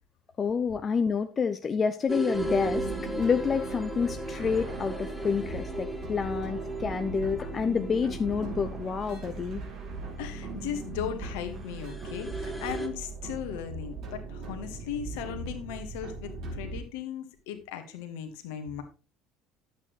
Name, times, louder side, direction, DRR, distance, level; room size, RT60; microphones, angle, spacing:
voice 1, 0.4-2.9 3.2-9.6, left 6 dB, 30° left, 8 dB, 0.7 m, -28 dB
sound 1, 2.1-12.9, right 1 dB, ahead, 1.8 m, -37 dB
sound 2, 2.3-16.8, right 4 dB, 55° right, 3.3 m, -39 dB
voice 2, 10.2-18.8, left 9 dB, 65° left, 7 dB, 1.6 m, -37 dB
10.5 x 8.2 x 3.2 m, 0.33 s
hypercardioid pair, 65°, 0 cm